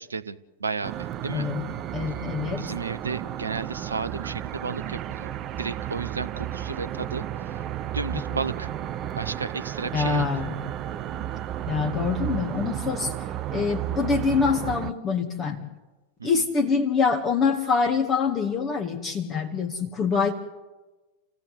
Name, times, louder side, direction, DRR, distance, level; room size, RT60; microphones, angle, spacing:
voice 1, 0.0-1.5 2.6-7.6 7.9-8.7 9.2-10.4 16.2-16.3, right 4 dB, 75° right, 14 dB, 0.8 m, -33 dB
sound 1, 0.8-14.9, right 11 dB, 35° right, 0.8 m, -33 dB
voice 2, 1.3-1.6 1.9-2.6 8.1-8.2 9.9-10.6 11.7-13.1 13.5-15.6 16.2-20.3, left 5 dB, 25° left, 2 dB, 2.2 m, -25 dB
29.0 x 16.5 x 8.3 m, 1.2 s
figure-of-eight pair, 90°, 0 cm